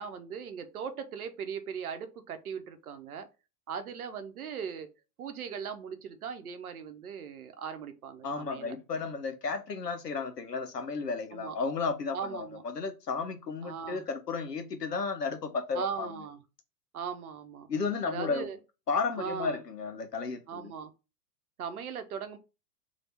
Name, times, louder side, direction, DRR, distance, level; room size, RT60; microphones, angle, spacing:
voice 1, 0.0-3.3 3.7-4.9 5.2-8.7 11.3-11.6 12.1-12.6 13.6-14.0 15.7-16.4 16.9-17.7 18.1-18.6 19.2-19.6 20.5-20.9 21.6-22.4, right 7 dB, 65° right, 0.8 m, -39 dB
voice 2, 8.2-16.1 17.7-18.5 18.9-20.7, left 4 dB, 85° left, 0.9 m, -33 dB
3.3 x 2.7 x 4.1 m
figure-of-eight pair, 105°, 47 cm